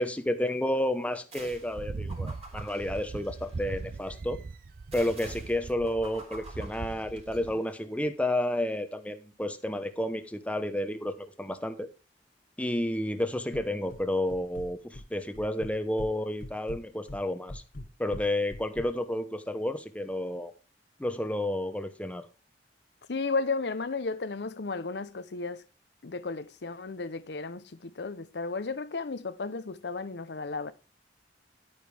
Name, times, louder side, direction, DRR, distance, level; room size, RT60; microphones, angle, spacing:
voice 1, 0.0-4.4 4.9-11.9 12.6-17.6 18.0-20.5 21.0-22.3, left 1 dB, 10° left, 0.9 m, -31 dB
sound 1, 1.3-1.8 2.1-3.8 4.9-7.5, right 2 dB, 35° right, 3.9 m, -49 dB
sound 2, 1.7-7.5, right 3 dB, 50° right, 0.5 m, -40 dB
sound 3, 13.5-14.0 14.3-15.1 15.3-16.1 16.4-18.9, left 1 dB, 50° left, 1.1 m, -42 dB
voice 2, 23.1-25.6 26.0-30.7, left 4 dB, 65° left, 0.7 m, -34 dB
10.5 x 9.3 x 3.3 m
head